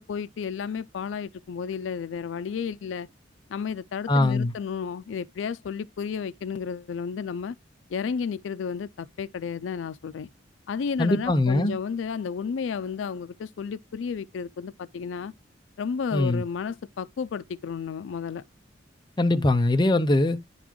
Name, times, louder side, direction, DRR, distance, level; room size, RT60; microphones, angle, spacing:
voice 1, 0.0-3.1 3.5-7.6 7.9-10.3 10.7-15.3 15.8-18.4, left 6 dB, 85° left, 0.4 m, -32 dB
voice 2, 4.1-4.5 11.0-11.8 16.1-16.4 19.2-20.4, left 2 dB, 25° left, 0.5 m, -22 dB
10.0 x 4.0 x 3.0 m
head